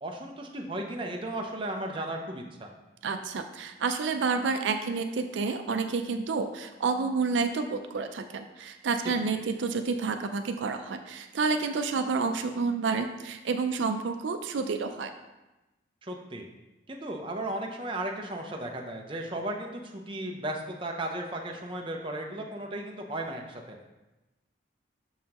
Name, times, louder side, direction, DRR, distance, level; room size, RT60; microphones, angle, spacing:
voice 1, 0.0-2.7 9.0-9.1 16.0-16.5 16.9-23.8, right 1 dB, 25° right, 1 dB, 0.6 m, -35 dB
voice 2, 3.0-15.1, right 4 dB, 80° right, 7 dB, 0.4 m, -29 dB
6.4 x 5.5 x 2.9 m, 1.0 s
head